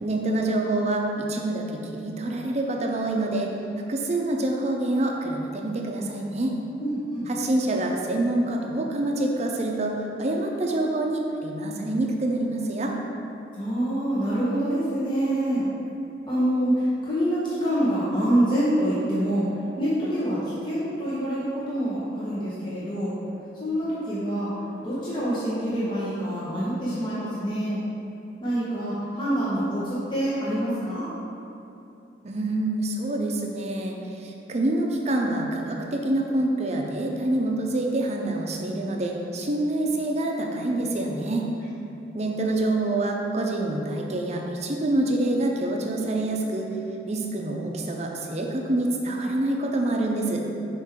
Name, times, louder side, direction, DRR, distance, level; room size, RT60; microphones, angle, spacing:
voice 1, 0.0-3.5 3.9-6.5 7.3-12.9 32.2-33.9 34.2-41.5 42.1-46.7 47.1-50.4, right 1 dB, 40° right, 1 dB, 0.6 m, -26 dB
voice 2, 6.8-7.3 13.5-15.6 16.3-19.4 19.8-23.1 23.6-24.5 24.8-27.8 28.4-31.1, right 1 dB, 25° left, -10 dB, 0.9 m, -26 dB
5.9 x 4.5 x 3.7 m, 2.8 s
head